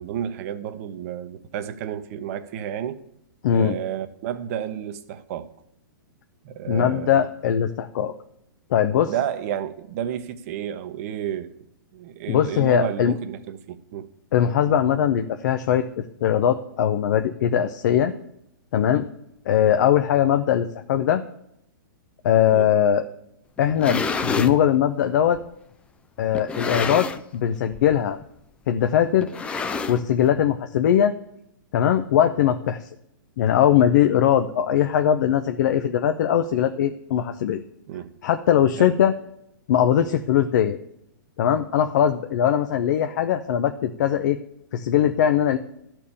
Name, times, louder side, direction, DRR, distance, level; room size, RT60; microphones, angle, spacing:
voice 1, 0.0-3.0 3.5-5.5 6.4-7.2 9.1-11.6 11.9-14.1 22.5-22.7 37.9-38.1 38.8-39.0, right 10 dB, 45° right, 0.9 m, -31 dB
voice 2, 3.4-3.7 6.7-8.1 8.7-9.1 12.3-13.1 14.3-15.9 16.2-18.1 18.7-19.1 19.5-21.2 22.2-23.0 23.6-25.4 26.2-27.1 27.3-28.2 28.7-29.3 29.9-31.1 31.7-32.8 33.4-37.6 38.2-39.1 39.7-40.8 41.4-44.4 44.7-45.6, left 9 dB, 55° left, 0.6 m, -20 dB
sound 1, 23.6-24.6 25.3-25.4 26.3-27.4 27.7-28.0 28.2-28.3 29.2-30.3, left 4 dB, 10° left, 0.4 m, -28 dB
12.5 x 4.5 x 8.6 m
hypercardioid pair, 145°, 11 cm